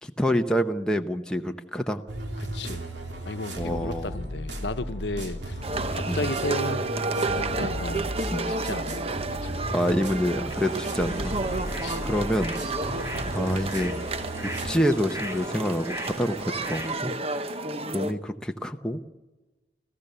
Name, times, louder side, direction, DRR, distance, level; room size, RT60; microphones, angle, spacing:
voice 1, 0.0-2.0 3.6-4.2 6.1-6.2 8.3-8.5 9.7-11.7 12.0-12.6 13.3-13.9 14.4-17.5 17.9-19.0, equal, 5° left, 0.8 m, -27 dB
sound 1, 2.1-14.7, right 1 dB, 70° right, 3.0 m, -35 dB
voice 2, 2.5-2.8 3.2-5.6 5.9-8.1 8.5-9.6 11.8-12.0, left 2 dB, 70° left, 1.0 m, -34 dB
sound 2, 5.6-18.1, right 3 dB, 35° right, 1.0 m, -31 dB
sound 3, 10.5-17.0, equal, 15° right, 2.6 m, -39 dB
29.0 x 15.0 x 6.8 m
head